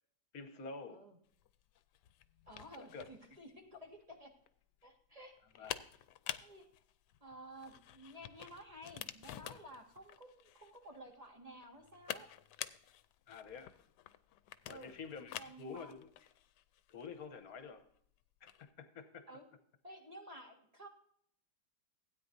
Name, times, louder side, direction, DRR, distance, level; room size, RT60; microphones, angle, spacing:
voice 1, 0.3-1.1 2.7-3.1 5.6-5.7 13.3-13.7 14.7-16.1 16.9-17.9 18.4-19.3, left 5 dB, 65° left, 1.4 m, -48 dB
sound 1, 1.3-18.7, left 12 dB, 85° left, 1.2 m, -50 dB
voice 2, 2.5-4.3 4.8-5.7 6.4-6.6 7.2-12.3 14.7-15.0 15.3-15.9 19.3-19.4 19.8-20.9, right 1 dB, 20° right, 1.7 m, -53 dB
16.0 x 9.2 x 2.6 m
omnidirectional pair, 1.8 m